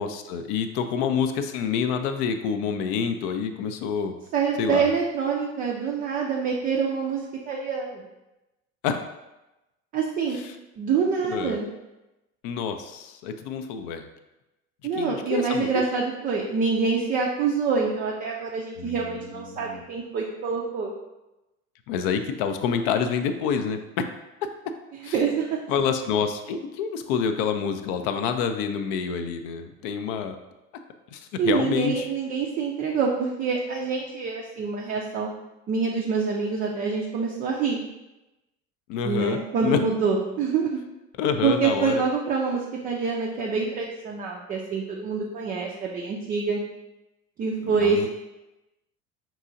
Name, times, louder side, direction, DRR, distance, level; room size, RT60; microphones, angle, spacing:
voice 1, 0.0-4.2 4.6-4.9 8.8-9.0 11.2-11.6 12.4-14.1 14.9-15.9 18.8-19.8 21.9-23.8 25.0-25.2 25.7-30.4 31.1-32.1 38.9-39.8 41.2-42.0 47.6-48.1, left 6 dB, 45° left, 8 dB, 0.4 m, -27 dB
voice 2, 4.3-8.0 9.9-10.4 10.8-11.7 14.8-20.9 25.1-25.5 31.4-35.3 35.7-37.8 39.0-40.8 41.4-46.6 47.4-48.1, right 5 dB, 25° right, -1 dB, 0.4 m, -26 dB
5.3 x 2.8 x 2.5 m, 0.99 s
figure-of-eight pair, 70°, 39 cm